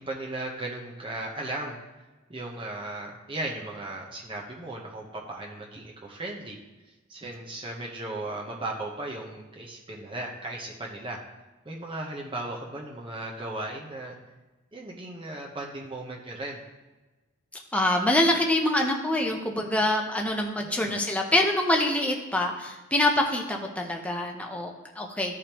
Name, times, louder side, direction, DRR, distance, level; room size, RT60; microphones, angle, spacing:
voice 1, 0.0-1.8 2.3-6.6 7.1-11.2 11.6-14.2 14.7-16.6 20.6-20.9, right 2 dB, 25° right, -2 dB, 0.9 m, -36 dB
voice 2, 17.7-25.4, left 1 dB, 5° left, 1 dB, 0.7 m, -25 dB
14.0 x 5.0 x 3.0 m, 1.2 s
head